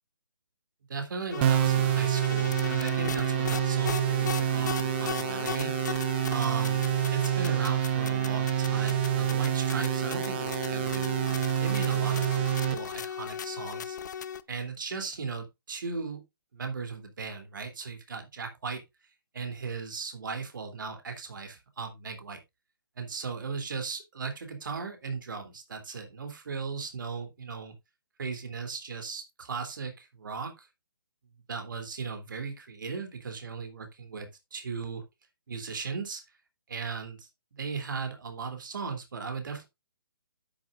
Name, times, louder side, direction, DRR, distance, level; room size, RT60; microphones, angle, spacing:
voice 1, 0.9-5.7 6.3-14.0 14.5-16.2 16.5-18.8 19.3-22.4 23.0-27.7 28.2-30.7 31.5-35.0 35.5-36.2 36.7-39.7, right 5 dB, 60° right, 3.0 m, -37 dB
sound 1, 1.3-14.4, left 8 dB, 50° left, 0.7 m, -36 dB
sound 2, 1.4-12.7, right 12 dB, 30° right, 0.7 m, -27 dB
10.0 x 8.9 x 2.5 m
figure-of-eight pair, 140°, 12 cm